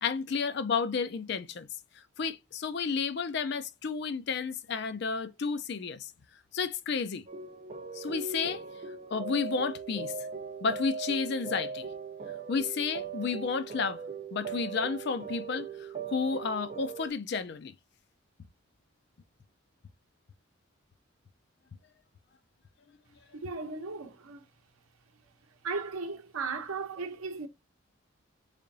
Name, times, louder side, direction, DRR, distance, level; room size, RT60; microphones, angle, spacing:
voice 1, 0.0-1.7 2.2-6.1 6.5-7.3 7.9-8.6 9.1-10.1 10.6-11.9 12.5-14.0 14.3-17.7, left 5 dB, 50° left, 0.4 m, -31 dB
sound 1, 7.3-17.1, right 4 dB, 30° right, 0.4 m, -39 dB
voice 2, 23.3-24.4 25.6-27.5, right 4 dB, 85° right, 0.7 m, -36 dB
3.8 x 3.4 x 2.5 m
head